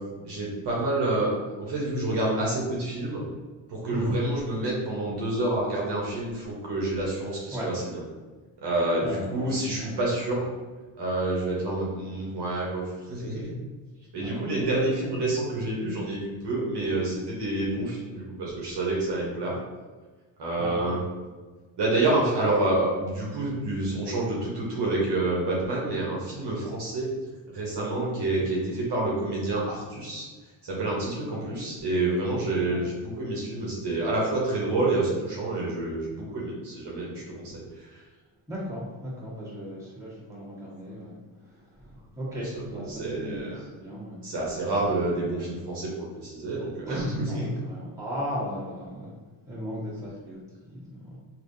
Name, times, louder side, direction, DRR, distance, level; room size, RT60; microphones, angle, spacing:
voice 1, 0.2-3.2 3.7-8.0 8.6-10.5 11.0-13.5 14.1-19.6 20.4-21.0 21.8-27.1 27.5-30.3 30.6-37.6 42.4-43.6 44.2-47.5, right 2 dB, 55° right, -4 dB, 1.1 m, -28 dB
voice 2, 9.0-10.0 14.2-14.7 20.6-20.9 31.4-31.6 32.7-32.9 38.5-41.2 42.1-44.2 46.8-49.1 49.5-51.2, equal, 5° right, -8 dB, 1.5 m, -36 dB
3.4 x 2.8 x 2.7 m, 1.3 s
cardioid pair, 90°, 49 cm